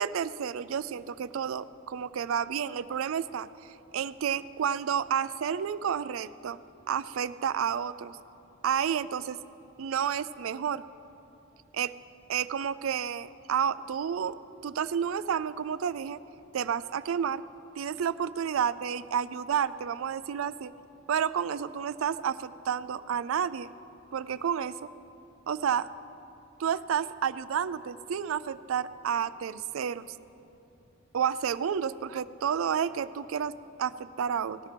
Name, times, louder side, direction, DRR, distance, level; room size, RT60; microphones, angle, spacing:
voice 1, 0.0-3.5 3.9-6.6 6.9-8.2 8.6-9.4 9.8-10.8 11.7-11.9 12.3-16.2 16.5-17.4 17.8-20.7 21.1-23.7 24.1-24.9 25.5-25.9 26.6-30.2 31.1-33.5 33.8-34.6, right 8 dB, 80° right, 16 dB, 0.4 m, -30 dB
18.5 x 14.0 x 3.4 m, 2.9 s
head